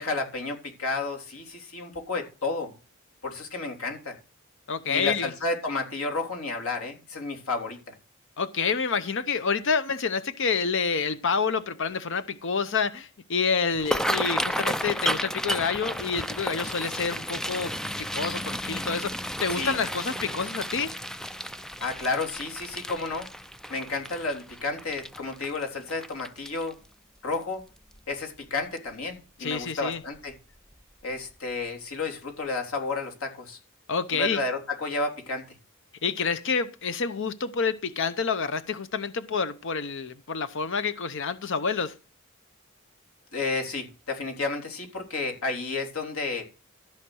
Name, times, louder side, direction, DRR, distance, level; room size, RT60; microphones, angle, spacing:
voice 1, 0.0-2.7 3.2-4.2 4.9-7.8 19.5-19.8 21.7-23.3 23.7-26.8 27.2-27.6 28.1-30.3 31.0-33.6 34.1-35.4 43.3-46.4, left 3 dB, 80° left, 3.6 m, -31 dB
voice 2, 4.7-5.3 8.4-20.9 29.4-30.0 33.9-34.4 36.0-41.9, left 5 dB, 65° left, 0.8 m, -28 dB
sound 1, 13.7-26.9 27.3-27.6 27.9-28.4 28.8-28.9 30.2-30.3 30.7-30.8 31.3-31.4, equal, 5° left, 0.5 m, -32 dB
14.0 x 5.7 x 6.3 m
head